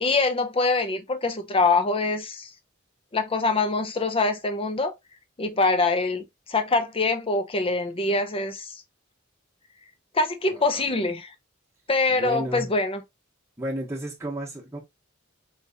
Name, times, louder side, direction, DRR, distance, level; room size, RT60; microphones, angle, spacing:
voice 1, 0.0-2.5 3.1-4.9 5.4-8.8 10.1-11.3 11.9-13.0, left 3 dB, 25° left, 0.7 m, -24 dB
voice 2, 10.5-11.1 12.1-12.7 13.6-14.8, right 1 dB, 15° right, 1.1 m, -33 dB
4.7 x 3.0 x 2.7 m
head